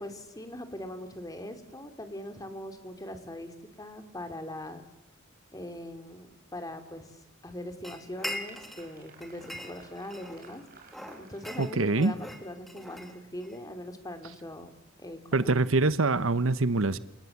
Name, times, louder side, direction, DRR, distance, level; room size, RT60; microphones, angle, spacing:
voice 1, 0.0-4.8 5.5-10.6 11.2-14.7 15.0-15.6, left 1 dB, 20° left, 3.0 m, -41 dB
Applause, 7.5-12.8, right 5 dB, 45° right, 4.9 m, -57 dB
sound 1, 7.8-8.9 9.2-10.5 10.9-13.6, left 1 dB, ahead, 2.7 m, -41 dB
voice 2, 11.6-12.1 15.3-17.0, right 3 dB, 80° right, 1.1 m, -24 dB
28.5 x 28.0 x 7.4 m
head